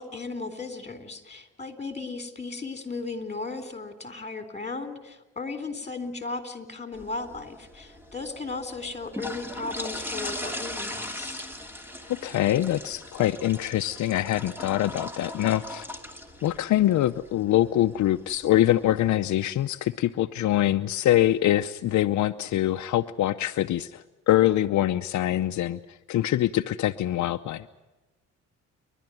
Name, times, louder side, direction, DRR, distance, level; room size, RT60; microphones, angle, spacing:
voice 1, 0.0-11.4, left 3 dB, 20° left, 9 dB, 3.6 m, -36 dB
sound 1, 6.9-19.3, left 1 dB, 5° right, 2.7 m, -39 dB
voice 2, 12.1-15.9 16.4-27.7, left 13 dB, 70° left, 8 dB, 0.7 m, -24 dB
30.0 x 12.0 x 9.2 m, 1.1 s
cardioid pair, 90°, 30 cm